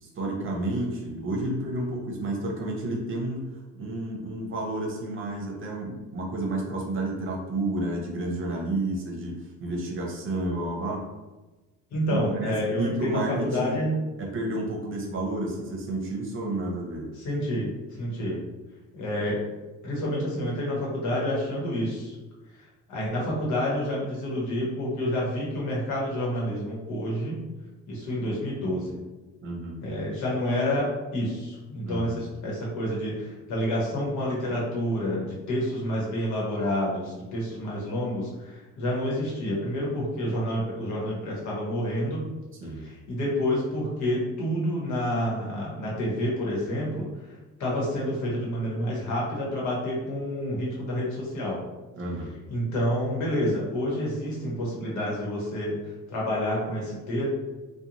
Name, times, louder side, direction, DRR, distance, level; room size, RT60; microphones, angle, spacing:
voice 1, 0.0-3.5 3.8-11.1 12.1-13.8 14.2-17.1 29.4-29.8 31.9-32.2 42.6-42.8 52.0-52.3, right 1 dB, 45° right, 0 dB, 0.7 m, -31 dB
voice 2, 11.9-14.0 17.1-17.7 18.0-18.4 18.9-19.4 19.8-22.1 22.9-27.4 27.9-29.0 29.8-42.2 42.8-47.1 47.6-51.6 52.5-55.7 56.1-57.3, equal, 75° left, -4 dB, 1.1 m, -28 dB
2.4 x 2.2 x 2.9 m, 1.2 s
cardioid pair, 90°, 29 cm